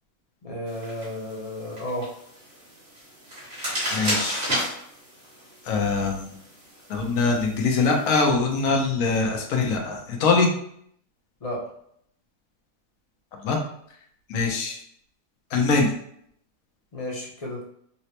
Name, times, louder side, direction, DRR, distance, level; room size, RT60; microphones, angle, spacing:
voice 1, 0.4-2.1 11.4-11.6 16.9-17.6, left 1 dB, 40° left, -4 dB, 0.6 m, -32 dB
sound 1, 0.7-8.1, equal, 60° right, 1.8 m, -33 dB
voice 2, 3.9-4.4 5.7-6.4 6.9-10.5 13.4-13.6 14.3-14.8 15.5-15.9, left 4 dB, 80° left, 2 dB, 1.1 m, -23 dB
4.1 x 2.0 x 2.8 m, 0.68 s
omnidirectional pair, 1.4 m